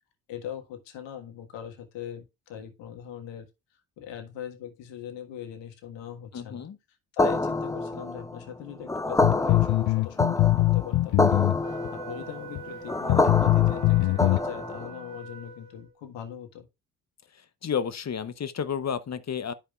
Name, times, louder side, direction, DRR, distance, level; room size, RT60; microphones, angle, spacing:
voice 1, 0.3-3.5 4.0-6.7 7.1-16.7, left 9 dB, 75° left, 1.6 m, -40 dB
voice 2, 6.3-6.8 17.3-19.5, left 7 dB, 35° left, 0.9 m, -31 dB
sound 1, 7.2-15.0, left 2 dB, 10° left, 0.4 m, -27 dB
sound 2, 9.2-11.9 12.6-12.7 13.1-14.4, left 19 dB, 60° left, 0.5 m, -22 dB
Wind instrument woodwind instrument, 11.6-16.0, right 3 dB, 40° right, 2.3 m, -43 dB
11.5 x 5.3 x 2.4 m
hypercardioid pair, 50°, 44 cm